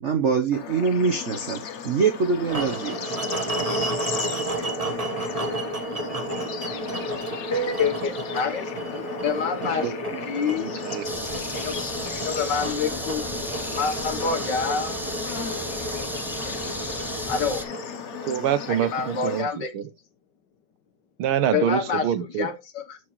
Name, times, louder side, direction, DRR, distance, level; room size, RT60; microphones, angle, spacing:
voice 1, 0.0-1.6 1.8-3.2 10.1-10.2, right 5 dB, 55° right, 0.8 m, -24 dB
Bird / Insect / Frog, 0.5-19.4, left 7 dB, 75° left, 0.6 m, -36 dB
sound 1, 2.5-18.6, right 2 dB, 25° right, 0.9 m, -32 dB
voice 2, 7.5-10.0 10.3-10.7 11.5-11.7 12.1-13.2 13.7-14.9 17.3-17.6 18.7-19.7 21.5-22.1 22.4-23.0, left 5 dB, 60° left, 1.6 m, -27 dB
voice 3, 10.6-11.0 18.3-19.9 21.2-22.5, right 10 dB, 85° right, 1.8 m, -26 dB
sound 2, 11.0-17.6, equal, ahead, 0.6 m, -34 dB
12.5 x 4.7 x 3.1 m
omnidirectional pair, 2.3 m